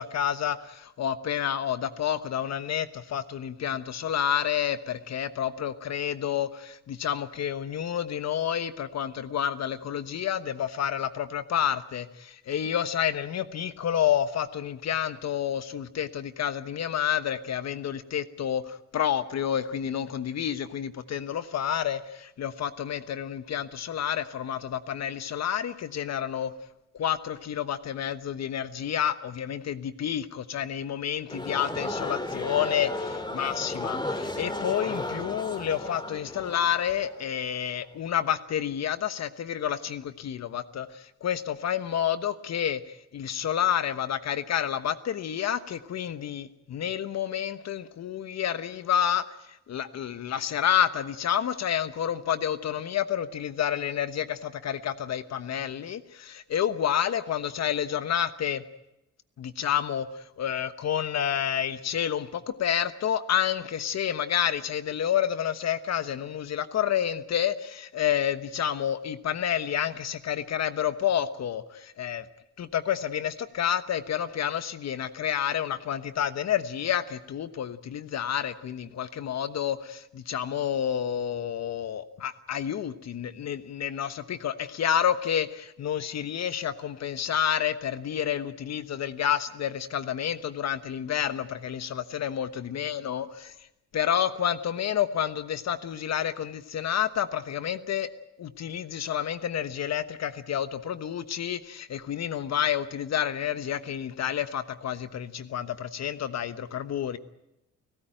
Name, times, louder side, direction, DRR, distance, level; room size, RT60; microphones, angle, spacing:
voice 1, 0.0-26.5 26.9-58.6 59.4-72.2 72.6-93.5 93.9-98.1 98.4-107.2, left 9 dB, 60° left, 12 dB, 1.2 m, -29 dB
sound 1, 31.3-37.7, left 2 dB, 15° left, 2.6 m, -34 dB
29.5 x 14.5 x 9.0 m, 0.90 s
cardioid pair, 90°, 30 cm